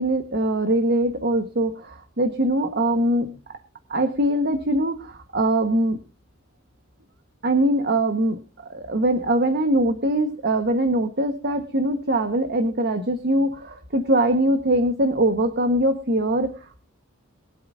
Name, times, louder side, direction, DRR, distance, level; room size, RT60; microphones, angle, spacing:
voice 1, 0.0-3.3 3.9-6.0 7.4-8.4 8.7-16.8, right 1 dB, 55° right, 7 dB, 1.4 m, -22 dB
23.0 x 8.4 x 2.7 m, 0.37 s
head